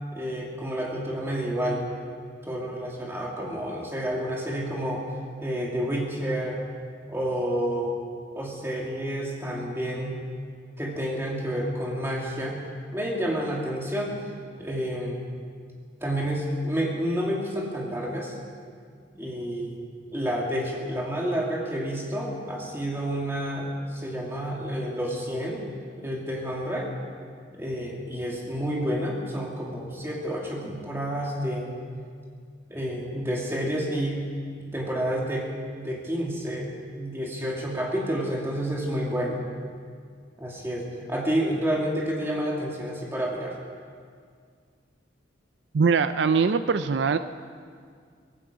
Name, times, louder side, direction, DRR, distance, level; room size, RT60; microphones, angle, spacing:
voice 1, 0.1-1.8 2.4-5.0 5.4-6.6 7.1-7.9 8.3-10.2 10.8-12.6 12.9-14.2 14.6-15.2 16.0-18.3 19.1-19.8 20.1-25.6 26.0-26.9 27.5-31.7 32.7-34.2 34.7-35.5 35.8-36.7 36.9-39.5 40.4-43.6, equal, 15° right, -2 dB, 2.4 m, -29 dB
voice 2, 45.7-47.2, right 5 dB, 65° right, 11 dB, 0.4 m, -22 dB
18.0 x 16.0 x 5.1 m, 2.1 s
head